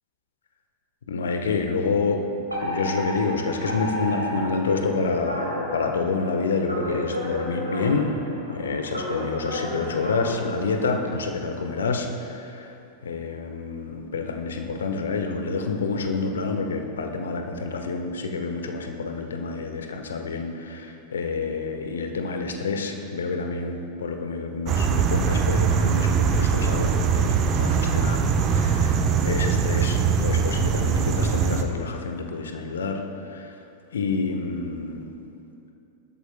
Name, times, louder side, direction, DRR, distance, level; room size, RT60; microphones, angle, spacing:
voice 1, 1.1-2.2 2.6-8.1 8.5-12.8 13.0-33.5 33.9-35.1, left 4 dB, 65° left, 4 dB, 1.1 m, -28 dB
Alarm, 2.5-11.1, left 1 dB, 85° right, 2.4 m, -32 dB
sound 1, 24.7-31.6, right 6 dB, 35° right, 0.9 m, -22 dB
19.5 x 12.5 x 2.2 m, 2.7 s
figure-of-eight pair, 90°, 0 cm